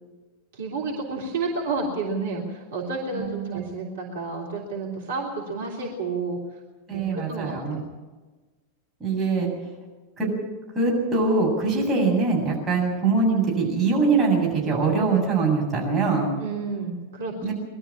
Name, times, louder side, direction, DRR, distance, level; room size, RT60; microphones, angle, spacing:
voice 1, 0.5-6.4 6.9-7.8 16.4-17.5, right 3 dB, 60° right, -2 dB, 3.3 m, -30 dB
voice 2, 3.1-3.6 6.9-7.8 9.0-9.5 10.2-10.3 10.7-16.3 17.4-17.5, right 4 dB, 20° right, -2 dB, 7.8 m, -23 dB
21.5 x 13.0 x 9.9 m, 1.3 s
figure-of-eight pair, 90°, 0 cm